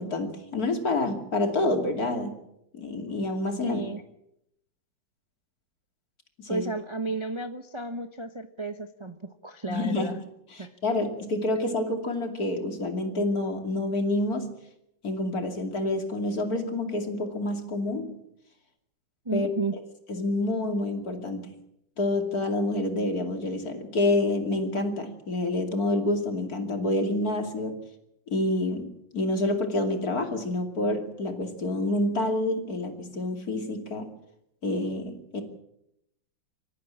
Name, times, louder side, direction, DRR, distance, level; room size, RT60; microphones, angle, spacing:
voice 1, 0.0-2.3 2.7-3.8 6.4-6.7 9.7-10.1 10.5-14.5 15.0-18.2 19.3-19.5 20.1-21.6 22.0-27.8 28.3-34.1 34.6-35.4, left 2 dB, 50° left, 5 dB, 3.1 m, -28 dB
voice 2, 3.6-4.0 6.5-10.2 10.6-10.7 19.2-19.7, right 3 dB, 20° right, 7 dB, 0.8 m, -33 dB
25.5 x 14.0 x 8.8 m, 0.80 s
omnidirectional pair, 2.1 m